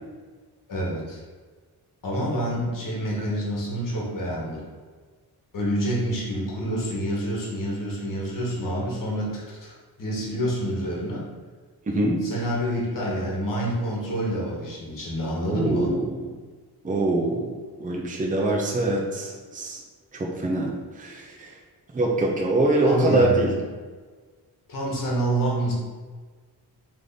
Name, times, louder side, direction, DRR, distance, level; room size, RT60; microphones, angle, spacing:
voice 1, 0.7-1.2 2.0-4.6 5.5-9.7 10.0-11.3 12.2-15.9 22.8-23.6 24.7-25.7, right 1 dB, 55° left, -3 dB, 1.3 m, -27 dB
voice 2, 11.9-12.2 15.5-16.3 16.8-17.5 17.8-19.8 20.1-21.5 21.9-23.5, right 2 dB, 20° right, -1 dB, 0.6 m, -24 dB
3.5 x 3.3 x 4.0 m, 1.4 s
wide cardioid pair, 130°, 40 cm